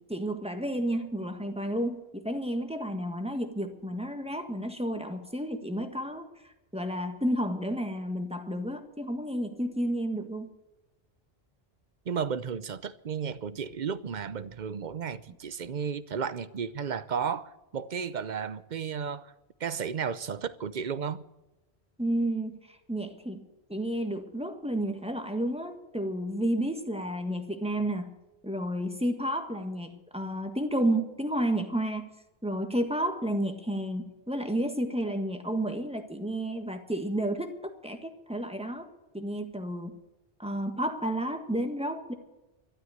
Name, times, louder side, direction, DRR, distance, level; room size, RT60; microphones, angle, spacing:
voice 1, 0.0-6.3 6.7-10.5 22.0-22.6 22.9-28.1 28.4-32.1 32.4-38.9 39.1-39.9 40.4-42.1, right 1 dB, 5° right, 1.5 m, -31 dB
voice 2, 12.1-19.3 19.6-21.2, right 7 dB, 50° right, 0.8 m, -33 dB
12.5 x 12.5 x 7.9 m
omnidirectional pair, 1.0 m